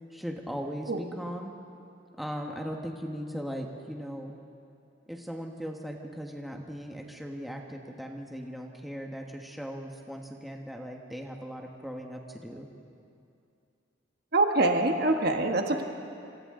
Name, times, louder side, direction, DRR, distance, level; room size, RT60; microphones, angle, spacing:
voice 1, 0.1-1.5 2.2-4.4 5.1-12.7, equal, ahead, 1 dB, 1.4 m, -38 dB
voice 2, 14.3-15.8, right 2 dB, 50° right, 4 dB, 1.4 m, -24 dB
27.0 x 26.0 x 3.8 m, 2.6 s
head